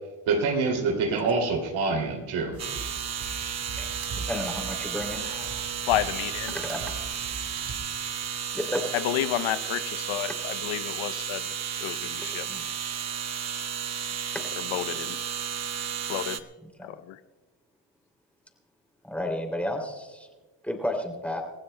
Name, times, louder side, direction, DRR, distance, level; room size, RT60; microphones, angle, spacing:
voice 1, 0.3-2.6, right 4 dB, 80° right, 3 dB, 2.7 m, -26 dB
sound 1, 2.5-7.7, right 4 dB, 55° right, 3.6 m, -41 dB
neon light thin buzz nice balanced, 2.6-16.4, right 8 dB, 35° right, 0.9 m, -33 dB
voice 2, 4.1-5.7 6.5-6.8 8.5-8.9 12.5-12.6 16.8-16.9 19.0-20.3 20.6-21.4, left 1 dB, 5° left, 3 dB, 2.8 m, -32 dB
voice 3, 5.9-6.5 9.0-11.4 11.8-12.5 14.7-15.2 16.1-16.4 17.1-17.2, left 13 dB, 80° left, 14 dB, 0.8 m, -30 dB
29.0 x 15.5 x 2.2 m, 1.3 s
cardioid pair, 100°, 47 cm